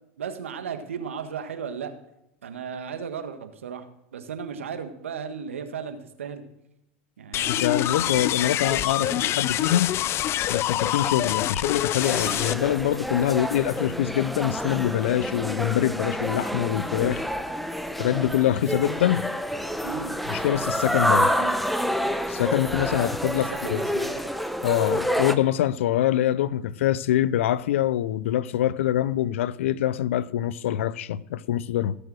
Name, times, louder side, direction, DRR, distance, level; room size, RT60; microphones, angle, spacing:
voice 1, 0.2-1.9 2.4-6.4 7.2-8.3 8.7-9.3 13.3-13.4 19.8-20.2 21.4-21.6 23.5-24.1, right 7 dB, 90° right, 1.7 m, -35 dB
sound 1, 7.3-12.5, left 13 dB, 40° left, 0.5 m, -26 dB
voice 2, 7.5-10.0 10.5-17.2 18.0-19.3 20.3-21.3 22.3-23.8 24.6-32.0, left 12 dB, 80° left, 0.6 m, -24 dB
sound 2, 12.0-25.4, equal, ahead, 0.9 m, -28 dB
17.0 x 7.1 x 6.3 m
hypercardioid pair, 105°, 7 cm